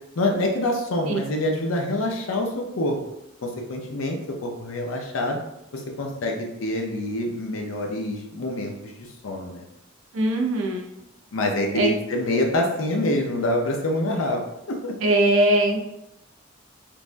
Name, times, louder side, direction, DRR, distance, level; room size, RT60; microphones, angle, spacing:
voice 1, 0.2-3.0 3.4-5.4 5.7-9.6 11.3-14.4 14.7-14.9, left 1 dB, 90° left, 1 dB, 0.6 m, -26 dB
voice 2, 10.1-10.8 11.7-11.9 15.0-15.8, right 1 dB, 80° right, 2 dB, 0.5 m, -20 dB
3.3 x 2.2 x 2.5 m, 0.86 s
head